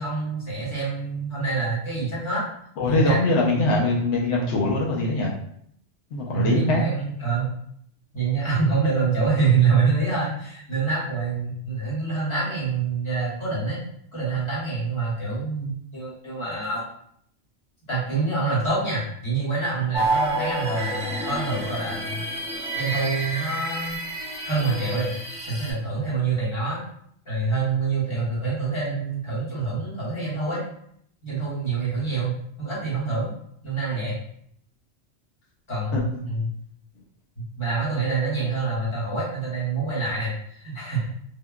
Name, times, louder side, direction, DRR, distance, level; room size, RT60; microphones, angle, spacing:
voice 1, 0.0-2.4 2.9-3.2 6.3-7.5 8.1-13.8 14.1-16.9 17.9-22.2 22.7-24.0 24.4-25.1 25.4-26.8 27.2-30.6 31.2-33.3 33.6-34.2 35.7-36.5 37.4-41.2, right 4 dB, 25° left, -7 dB, 1.0 m, -26 dB
voice 2, 2.8-5.3 6.1-6.8 35.9-36.2, left 2 dB, 80° left, -3 dB, 1.0 m, -22 dB
sound 1, 19.9-25.7, right 2 dB, 5° right, 0.6 m, -29 dB
3.5 x 2.1 x 2.3 m, 0.67 s
omnidirectional pair, 1.2 m